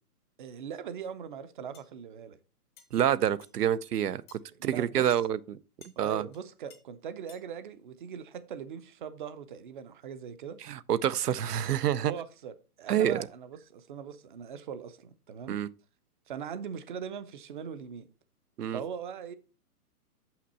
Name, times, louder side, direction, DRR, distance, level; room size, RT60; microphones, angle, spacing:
voice 1, 0.4-2.4 4.6-5.2 6.0-10.6 11.9-15.6 16.3-18.1 18.7-19.3, right 7 dB, 35° right, 0.6 m, -40 dB
sound 1, 1.7-1.9 2.8-2.9 3.4-3.6 4.3-4.4 5.1-5.3 5.8-6.0 6.3-6.4 6.7-6.8 7.3-7.4, left 7 dB, 20° left, 0.6 m, -54 dB
voice 2, 2.9-5.6 6.0-6.2 10.7-12.1 12.9-13.2 15.5-15.7 18.6-18.8, right 10 dB, 85° right, 0.7 m, -27 dB
6.9 x 5.8 x 4.2 m
hypercardioid pair, 150°, 46 cm